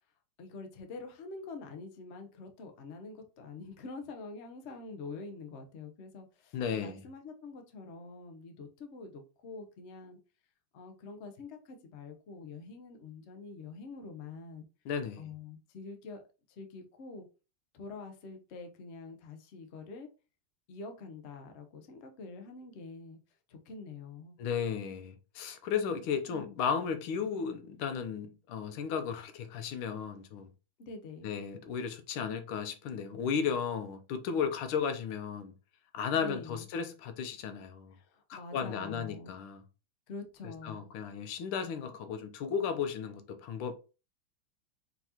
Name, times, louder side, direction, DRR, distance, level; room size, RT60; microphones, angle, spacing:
voice 1, 0.4-10.2 10.7-14.7 15.2-16.2 16.5-17.2 17.7-20.1 20.7-23.2 23.5-24.4 26.3-26.5 30.8-31.3 36.1-36.6 37.9-39.4 40.1-40.9, left 3 dB, 65° left, 0.6 m, -46 dB
voice 2, 6.5-7.0 14.8-15.2 24.4-30.5 31.2-35.5 35.9-37.9 38.3-39.6 40.6-43.7, left 6 dB, 90° left, 1.6 m, -34 dB
4.5 x 4.0 x 2.8 m
omnidirectional pair, 2.2 m